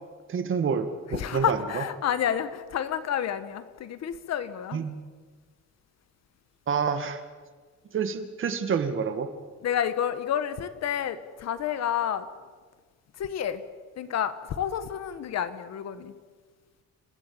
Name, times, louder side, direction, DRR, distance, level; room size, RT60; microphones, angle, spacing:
voice 1, 0.3-1.6 4.7-5.0 6.7-7.2 7.9-9.3, right 6 dB, 40° right, 9 dB, 2.0 m, -28 dB
voice 2, 1.1-4.9 9.6-12.3 13.2-13.6 14.0-16.1, left 9 dB, 60° left, 12 dB, 1.6 m, -29 dB
30.0 x 16.5 x 8.8 m, 1.5 s
cardioid pair, 175°, 30 cm